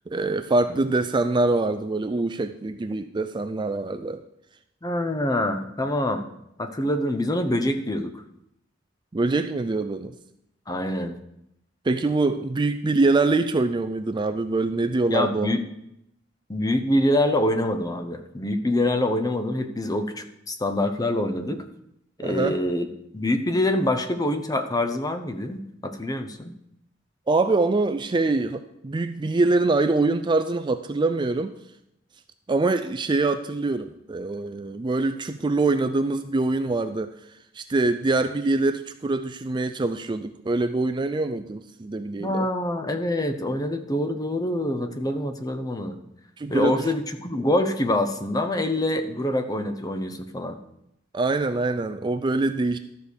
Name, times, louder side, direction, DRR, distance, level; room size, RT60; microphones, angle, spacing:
voice 1, 0.1-4.2 9.1-10.1 11.8-15.5 22.2-22.6 27.3-31.5 32.5-37.1 37.5-42.5 46.4-46.9 51.1-52.8, right 3 dB, 25° right, 10 dB, 0.4 m, -24 dB
voice 2, 4.8-6.2 6.6-8.2 10.7-11.2 15.1-15.7 16.5-21.6 22.2-22.9 23.1-26.5 42.2-46.0 46.5-50.6, left 1 dB, 20° left, 8 dB, 0.8 m, -25 dB
12.5 x 5.2 x 6.5 m, 0.80 s
head